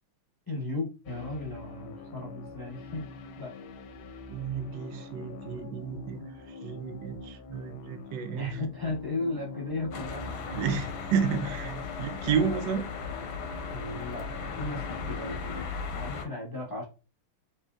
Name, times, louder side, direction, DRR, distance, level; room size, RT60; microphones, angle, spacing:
voice 1, 0.5-3.1 3.4-3.5 8.3-10.6 13.7-15.7 15.9-16.8, left 2 dB, 30° left, 0.4 m, -36 dB
sound 1, 1.1-15.6, left 3 dB, 90° left, 1.4 m, -45 dB
voice 2, 4.3-6.2 6.6-8.6 10.6-11.7 12.0-12.9, right 6 dB, 75° right, 1.1 m, -31 dB
sound 2, 9.9-16.2, left 5 dB, 65° left, 1.1 m, -37 dB
4.2 x 3.2 x 2.3 m
omnidirectional pair, 2.2 m